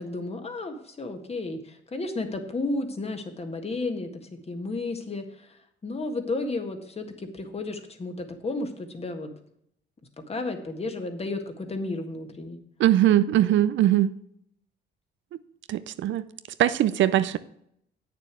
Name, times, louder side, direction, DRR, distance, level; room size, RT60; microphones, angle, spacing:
voice 1, 0.0-5.5 5.8-9.3 10.3-12.6, left 2 dB, 30° left, 6 dB, 1.7 m, -33 dB
voice 2, 12.8-14.1 15.7-16.3 16.6-17.4, right 12 dB, 70° right, 14 dB, 0.6 m, -21 dB
8.7 x 6.9 x 6.0 m, 0.71 s
cardioid pair, 90°, 20 cm